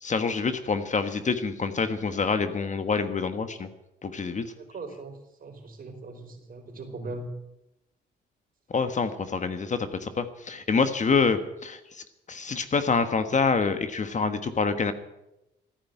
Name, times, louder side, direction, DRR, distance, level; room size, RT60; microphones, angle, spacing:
voice 1, 0.0-3.7 4.0-4.5 8.7-11.8 12.3-14.9, left 5 dB, 40° left, 9 dB, 1.4 m, -26 dB
voice 2, 4.5-7.3, right 2 dB, 45° right, 3 dB, 4.6 m, -40 dB
14.5 x 9.9 x 9.2 m, 0.89 s
cardioid pair, 90°, 20 cm